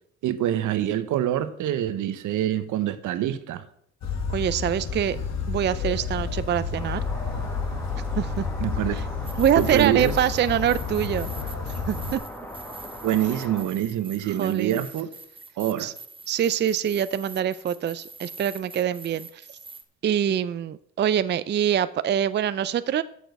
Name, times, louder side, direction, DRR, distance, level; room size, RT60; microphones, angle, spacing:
voice 1, 0.2-3.6 8.6-9.0 9.6-10.2 13.0-15.1 15.6-15.9, right 12 dB, 80° right, 0.9 m, -25 dB
sound 1, 4.0-12.2, left 5 dB, 60° left, 1.7 m, -30 dB
voice 2, 4.3-5.2 5.5-7.0 8.2-8.5 8.9-9.0 9.4-11.3 11.9-12.2 14.4-14.8 15.8-15.9 16.3-19.4 20.0-23.0, right 9 dB, 35° right, 0.4 m, -24 dB
sound 2, 6.7-13.6, equal, 5° left, 1.5 m, -40 dB
sound 3, 9.2-19.8, right 3 dB, 15° right, 0.9 m, -45 dB
7.0 x 6.3 x 7.8 m
cardioid pair, 90°, 30 cm